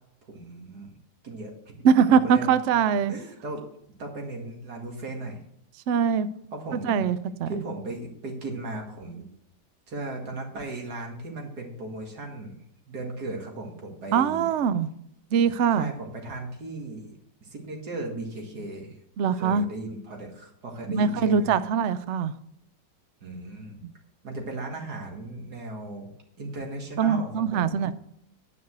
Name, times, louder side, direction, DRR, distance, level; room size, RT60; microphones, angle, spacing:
voice 1, 0.3-0.9 1.2-3.7 4.0-5.4 6.5-7.1 7.5-9.3 9.9-14.5 15.7-17.2 17.4-19.0 19.3-21.6 23.2-23.8 24.2-26.1 26.4-27.9, right 2 dB, 60° right, 2.6 m, -37 dB
voice 2, 1.8-3.1 5.9-6.3 6.7-7.5 14.1-14.9 15.3-15.9 19.2-19.7 20.9-22.3 23.8-23.9 27.0-27.9, right 7 dB, 90° right, 0.6 m, -22 dB
10.0 x 5.4 x 7.9 m
omnidirectional pair, 1.9 m